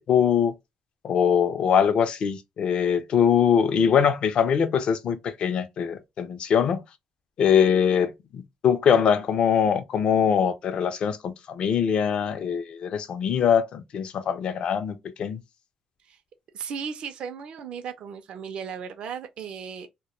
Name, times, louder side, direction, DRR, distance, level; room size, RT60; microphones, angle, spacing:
voice 1, 0.1-0.5 1.0-6.8 7.4-15.4, left 7 dB, 55° left, 0.4 m, -22 dB
voice 2, 16.5-19.9, right 7 dB, 55° right, 0.4 m, -36 dB
2.1 x 2.1 x 2.9 m
cardioid pair, 105°, 2 cm